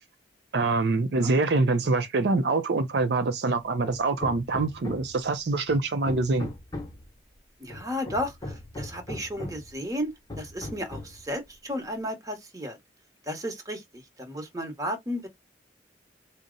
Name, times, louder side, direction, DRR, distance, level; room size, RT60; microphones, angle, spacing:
voice 1, 0.5-6.5, right 3 dB, 65° right, 0.5 m, -25 dB
Hammer, 3.8-5.2 5.7-7.1 7.7-9.7 10.3-11.2, left 1 dB, 20° left, 0.9 m, -39 dB
voice 2, 7.6-10.1 10.4-12.8 13.2-15.3, equal, 20° right, 1.0 m, -33 dB
4.0 x 2.0 x 3.7 m
head